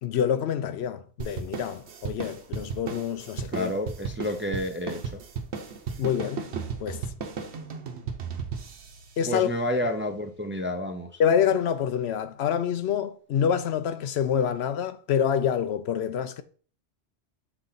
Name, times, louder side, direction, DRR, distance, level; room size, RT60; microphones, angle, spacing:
voice 1, 0.0-3.7 6.0-6.5 6.8-7.0 9.2-9.5 11.2-16.4, left 8 dB, 70° left, 0.8 m, -26 dB
sound 1, 1.2-10.0, right 5 dB, 70° right, 1.1 m, -36 dB
voice 2, 3.5-5.2 9.3-11.2, left 1 dB, 15° right, 0.4 m, -30 dB
6.9 x 4.2 x 3.9 m
omnidirectional pair, 1.2 m